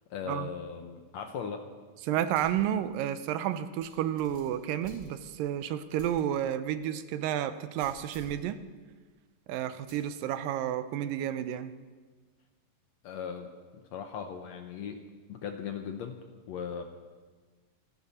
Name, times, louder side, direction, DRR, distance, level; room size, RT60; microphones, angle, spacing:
voice 1, 0.1-1.7 13.0-15.0 15.3-16.8, left 7 dB, 70° left, 6 dB, 1.8 m, -38 dB
voice 2, 2.1-8.6 9.5-11.7, right 10 dB, 85° right, 12 dB, 2.4 m, -31 dB
sound 1, 2.3-2.7 3.1-3.2 3.8-5.5 6.0-6.2 6.7-6.8 7.8-8.4 9.9-10.2, equal, 30° right, 4.9 m, -52 dB
27.0 x 11.5 x 4.2 m, 1.4 s
omnidirectional pair, 3.9 m